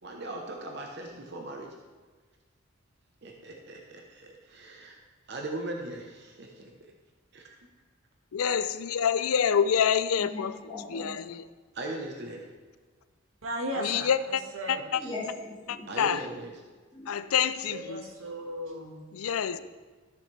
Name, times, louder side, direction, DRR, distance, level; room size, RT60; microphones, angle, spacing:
voice 1, 0.0-1.7 3.2-5.0 5.3-6.9 7.3-7.6 11.7-12.5 15.9-16.5, right 2 dB, 50° right, 0.9 m, -39 dB
voice 2, 8.3-10.6 10.9-11.4 13.8-14.4 14.7-15.0 15.7-16.3 17.1-18.0 19.1-19.6, left 7 dB, 85° left, 0.4 m, -27 dB
voice 3, 10.2-11.1 15.0-15.9 16.9-17.3, left 2 dB, 25° left, 2.1 m, -39 dB
voice 4, 13.4-15.1 17.6-19.0, equal, 80° right, 1.5 m, -36 dB
13.0 x 7.0 x 3.3 m
head